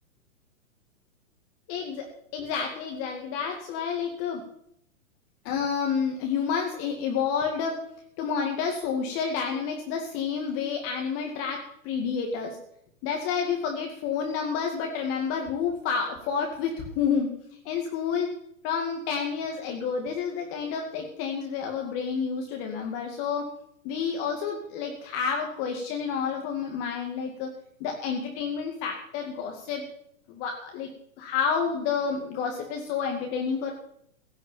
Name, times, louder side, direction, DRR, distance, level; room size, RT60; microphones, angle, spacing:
voice 1, 1.7-2.1 2.3-4.4 5.4-7.8 8.2-12.6 13.0-17.3 17.7-18.3 18.6-23.5 23.8-27.5 27.8-29.8 30.3-30.9 31.2-33.7, left 6 dB, 35° left, 2 dB, 2.3 m, -29 dB
16.0 x 6.4 x 8.8 m, 0.72 s
hypercardioid pair, 125°, 41 cm